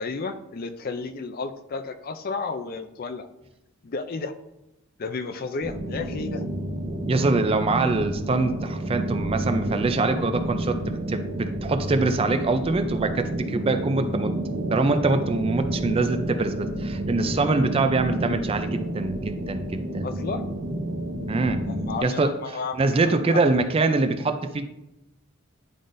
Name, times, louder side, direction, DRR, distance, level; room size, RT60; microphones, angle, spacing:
voice 1, 0.0-3.3 3.8-4.3 5.0-6.5 15.1-15.2 17.3-17.6 20.0-20.5 21.9-22.9 23.3-23.4, left 4 dB, 45° left, 9 dB, 0.4 m, -32 dB
sound 1, 5.6-22.0, right 1 dB, 60° right, 1.1 m, -30 dB
voice 2, 7.0-20.1 21.3-21.7 22.0-24.6, right 3 dB, 25° right, 8 dB, 0.4 m, -24 dB
10.0 x 3.8 x 2.6 m, 0.90 s
head